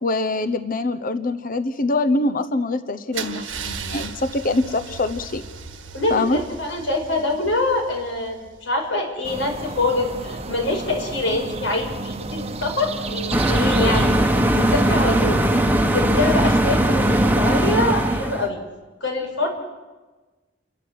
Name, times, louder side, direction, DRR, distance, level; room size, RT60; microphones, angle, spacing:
voice 1, 0.0-5.4 6.1-6.4, left 2 dB, 45° left, 10 dB, 0.9 m, -24 dB
Car / Engine starting / Idling, 3.1-9.0, right 5 dB, 90° right, 1.6 m, -36 dB
voice 2, 5.9-14.1 14.5-15.4 15.8-18.6 19.0-19.5, left 2 dB, 85° left, 1 dB, 6.0 m, -24 dB
sound 1, 9.2-15.6, right 3 dB, 35° right, 1.0 m, -32 dB
sound 2, 13.3-18.5, right 1 dB, 10° right, 1.1 m, -19 dB
30.0 x 12.0 x 7.9 m, 1.2 s
head